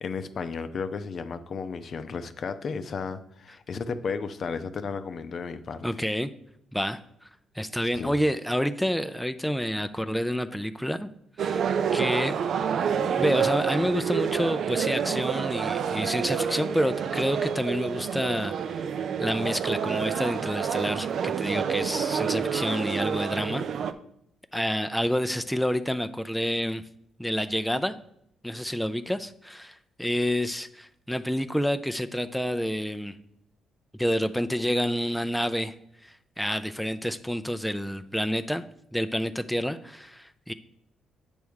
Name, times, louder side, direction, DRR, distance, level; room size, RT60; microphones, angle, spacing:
voice 1, 0.0-5.8 7.9-8.2, left 5 dB, 50° left, 0.6 m, -33 dB
voice 2, 5.8-6.3 6.7-7.3 7.5-11.1 11.4-11.7 11.9-12.4 13.2-18.9 19.2-23.6 24.5-26.8 27.2-28.0 28.4-33.2 34.0-35.7 36.0-38.6 38.9-40.5, equal, ahead, 0.4 m, -28 dB
sound 1, 11.4-23.9, right 7 dB, 65° right, 0.5 m, -28 dB
8.6 x 3.5 x 6.3 m
cardioid pair, 90°, 0 cm